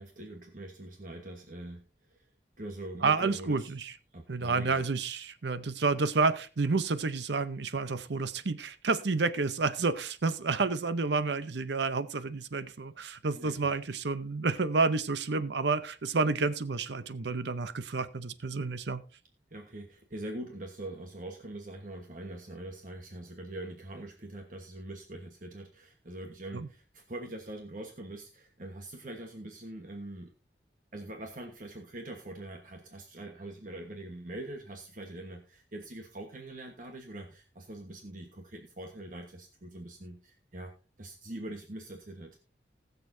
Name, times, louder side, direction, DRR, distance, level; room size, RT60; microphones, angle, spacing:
voice 1, 0.0-2.3 2.6-3.7 4.1-4.9 13.3-13.7 19.5-30.3 30.9-42.4, right 1 dB, 45° right, 3 dB, 1.3 m, -43 dB
voice 2, 3.0-3.9 4.3-19.0 26.5-26.7, right 4 dB, 75° right, 13 dB, 0.7 m, -30 dB
20.0 x 6.9 x 2.7 m, 0.32 s
head